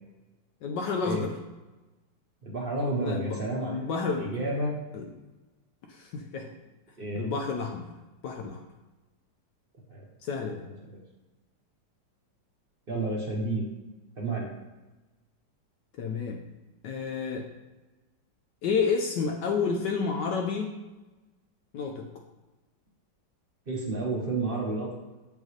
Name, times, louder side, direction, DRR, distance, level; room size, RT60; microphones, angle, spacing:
voice 1, 0.6-1.3 3.0-3.4 3.7-4.4 4.9-5.1 5.9-6.5 7.1-7.9 8.2-8.6 10.2-10.6 16.0-16.4 16.8-17.5 18.6-20.7 21.7-22.1, left 5 dB, 75° left, 2 dB, 1.2 m, -30 dB
voice 2, 2.4-4.8 7.0-7.2 9.9-10.0 12.9-13.6 14.2-14.5 23.7-24.9, right 2 dB, 40° right, -2 dB, 1.0 m, -30 dB
7.3 x 5.3 x 3.1 m, 1.1 s
omnidirectional pair, 2.0 m